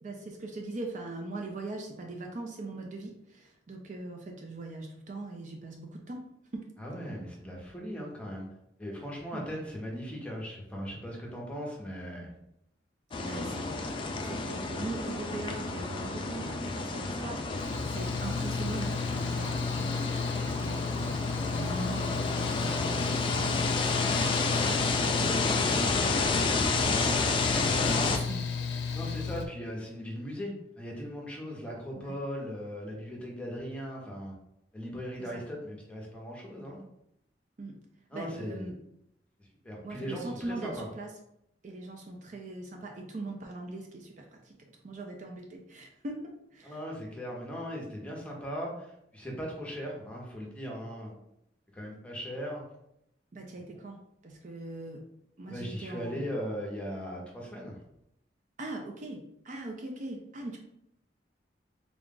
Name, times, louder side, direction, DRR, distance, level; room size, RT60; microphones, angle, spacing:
voice 1, 0.0-6.3 6.5-6.7 9.3-9.4 13.2-13.7 14.2-20.3 20.6-28.5 32.0-32.1 35.2-35.4 37.6-37.8 38.1-38.7 39.8-41.1 41.6-46.2 46.5-46.8 53.3-55.0 55.4-56.2 58.6-60.6, right 2 dB, 45° right, 2 dB, 0.4 m, -41 dB
voice 2, 6.8-8.5 8.8-12.3 28.9-34.3 34.7-36.8 38.1-38.7 39.6-40.9 46.6-51.1 51.7-52.6 55.5-57.7, equal, 5° left, -2 dB, 0.8 m, -38 dB
sound 1, 13.1-28.2, left 3 dB, 30° left, 0.3 m, -30 dB
Mechanical fan, 17.6-29.5, left 5 dB, 90° left, 0.5 m, -34 dB
3.5 x 2.3 x 3.7 m, 0.78 s
head